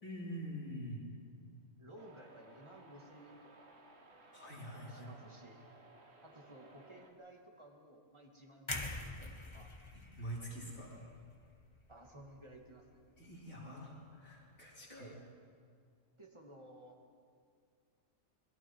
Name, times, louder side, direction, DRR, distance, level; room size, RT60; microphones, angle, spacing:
voice 1, 0.0-1.1 4.3-5.1 10.2-11.0 13.2-15.1, equal, 75° left, -5 dB, 5.0 m, -45 dB
voice 2, 1.8-3.8 4.8-5.7 6.2-9.7 11.9-13.0 14.9-15.2 16.2-17.0, right 1 dB, 20° right, 1 dB, 2.2 m, -56 dB
sound 1, 2.0-7.1, right 2 dB, 50° right, 2.0 m, -60 dB
sound 2, 8.7-12.7 13.1-13.3, left 2 dB, 20° left, 1.4 m, -46 dB
25.5 x 21.5 x 4.8 m, 2.2 s
omnidirectional pair, 1.4 m